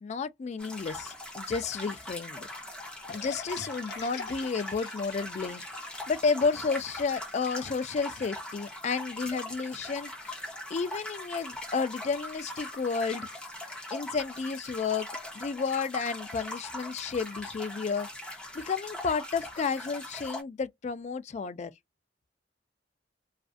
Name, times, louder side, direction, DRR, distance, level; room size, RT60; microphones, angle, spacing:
voice 1, 0.0-2.5 3.1-5.6 6.1-10.4 10.7-13.3 13.9-15.1 15.3-18.1 18.5-21.7, left 5 dB, 40° left, 0.3 m, -31 dB
sound 1, 0.6-20.4, left 1 dB, 5° left, 0.7 m, -41 dB
sound 2, 3.1-8.4, left 6 dB, 60° left, 0.7 m, -45 dB
2.5 x 2.3 x 2.4 m
head